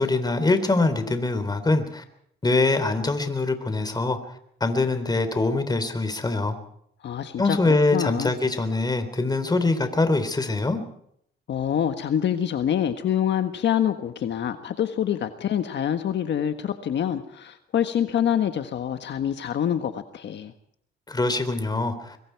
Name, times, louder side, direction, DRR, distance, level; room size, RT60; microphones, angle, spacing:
voice 1, 0.0-2.0 2.4-4.2 4.6-6.6 7.4-10.8 21.1-22.2, left 2 dB, 20° left, 9 dB, 3.6 m, -23 dB
voice 2, 7.0-7.6 7.9-8.3 11.5-20.5, left 9 dB, 65° left, 8 dB, 1.4 m, -26 dB
24.5 x 23.5 x 4.7 m, 0.72 s
cardioid pair, 90°, 20 cm